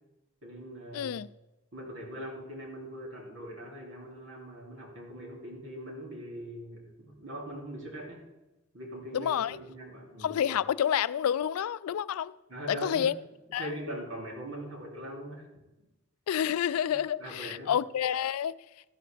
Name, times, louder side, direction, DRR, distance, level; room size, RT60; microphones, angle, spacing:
voice 1, 0.4-1.1 1.7-8.2 8.7-10.4 12.5-13.1 13.6-15.5 15.8-15.9 16.9-17.7, right 1 dB, 65° right, 2.9 m, -41 dB
voice 2, 0.9-1.3 9.1-9.6 10.2-12.3 12.7-13.1 13.5-13.7 16.3-18.6, left 9 dB, 90° left, 0.3 m, -29 dB
12.5 x 11.5 x 3.4 m
head